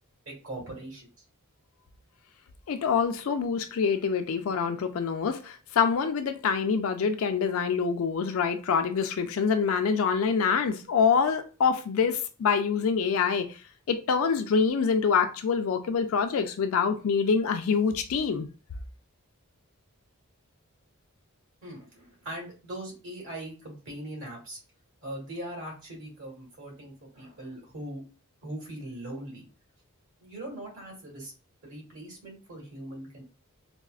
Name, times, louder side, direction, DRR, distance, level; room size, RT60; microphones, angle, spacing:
voice 1, 0.2-1.1 21.6-24.6 25.0-28.0 28.4-29.5 30.2-31.3 31.6-33.2, right 1 dB, 65° right, 1.6 m, -40 dB
voice 2, 2.7-13.6 13.9-18.5, left 6 dB, 70° left, 0.4 m, -25 dB
4.2 x 2.0 x 2.4 m
head